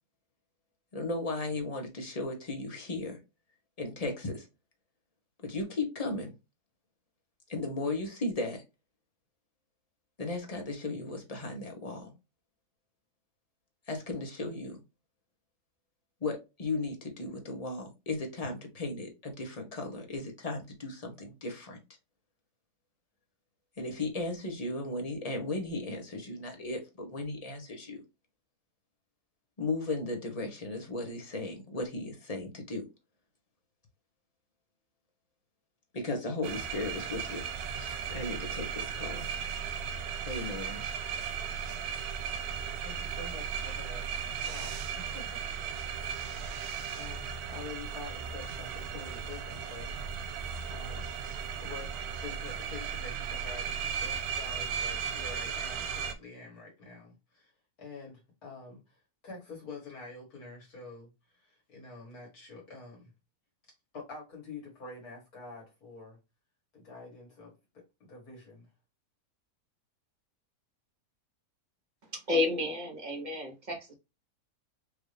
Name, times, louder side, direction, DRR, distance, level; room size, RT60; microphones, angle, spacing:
voice 1, 0.9-3.2 3.8-4.4 5.4-6.3 7.5-8.6 10.2-12.1 13.9-14.8 16.2-21.8 23.8-28.0 29.6-32.8 35.9-37.4 37.8-39.3 40.2-40.8, left 2 dB, 30° left, 0.9 m, -36 dB
sound 1, 36.4-56.1, right 7 dB, 75° right, 1.1 m, -36 dB
voice 2, 42.8-44.1 44.4-45.3 45.8-46.6 46.9-49.9 50.7-51.1 51.6-51.9 52.2-57.5 57.8-63.1 63.9-66.2 66.7-67.8 68.1-68.7, left 3 dB, 70° left, 1.9 m, -47 dB
voice 3, 72.1-73.9, left 2 dB, 30° right, 1.1 m, -31 dB
4.7 x 2.6 x 3.2 m
omnidirectional pair, 1.7 m